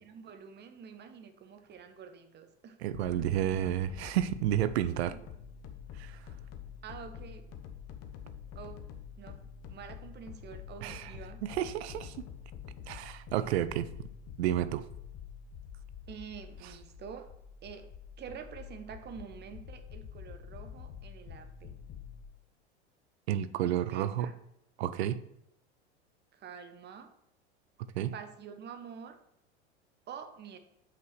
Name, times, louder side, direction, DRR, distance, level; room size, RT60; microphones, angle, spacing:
voice 1, 0.0-2.8 3.1-3.7 5.1-5.2 6.8-7.5 8.5-8.8 9.2-9.4 9.7-11.4 16.1-17.3 17.6-17.9 18.2-21.8 23.6-24.4 26.3-27.1 28.1-29.2 30.1-30.6, right 7 dB, 30° right, 1.0 m, -47 dB
voice 2, 2.8-5.2 6.0-6.1 10.8-11.2 11.4-12.1 12.9-13.9 14.4-14.9 23.3-24.3 24.8-25.2 28.0-28.1, right 11 dB, 70° right, 0.5 m, -31 dB
sound 1, 2.9-22.2, left 8 dB, 45° left, 1.0 m, -47 dB
5.6 x 5.1 x 5.9 m
hypercardioid pair, 85°, 34 cm